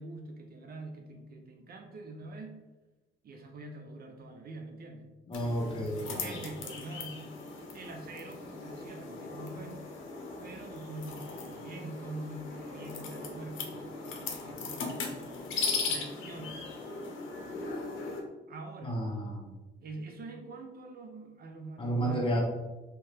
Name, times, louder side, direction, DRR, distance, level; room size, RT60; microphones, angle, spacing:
voice 1, 0.0-2.5 3.2-5.1 6.2-7.2 7.7-9.9 10.4-15.1 15.8-16.6 18.5-19.0 19.8-22.3, right 2 dB, 50° right, 4 dB, 0.5 m, -44 dB
sound 1, 5.3-18.2, left 4 dB, 75° left, 0.7 m, -38 dB
voice 2, 5.3-6.4 18.8-19.4 21.8-22.4, right 1 dB, 25° left, -2 dB, 1.1 m, -31 dB
3.1 x 2.7 x 3.3 m, 1.1 s
cardioid pair, 90°, 20 cm